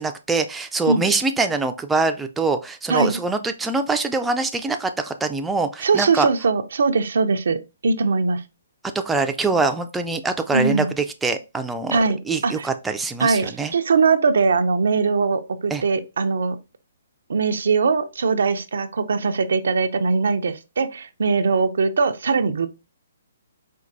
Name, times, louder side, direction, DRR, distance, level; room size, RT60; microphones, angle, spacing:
voice 1, 0.0-6.3 9.1-12.0 12.3-13.7 15.7-15.8, right 3 dB, 5° right, 0.3 m, -24 dB
voice 2, 5.8-8.4 10.5-10.9 11.9-12.7 13.2-16.6 17.3-22.7, right 4 dB, 70° right, 0.4 m, -21 dB
4.4 x 2.3 x 2.5 m
hypercardioid pair, 145°, 0 cm